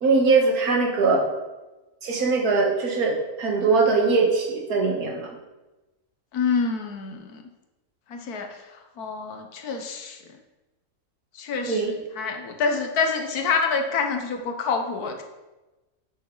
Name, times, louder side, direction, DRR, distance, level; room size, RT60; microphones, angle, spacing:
voice 1, 0.0-1.3 2.0-5.3 11.7-11.9, right 4 dB, 75° right, 1 dB, 1.8 m, -21 dB
voice 2, 6.3-7.4 8.1-10.2 11.3-11.8 12.2-15.2, left 5 dB, 80° left, 5 dB, 1.5 m, -27 dB
9.2 x 6.5 x 3.8 m, 1.1 s
omnidirectional pair, 1.6 m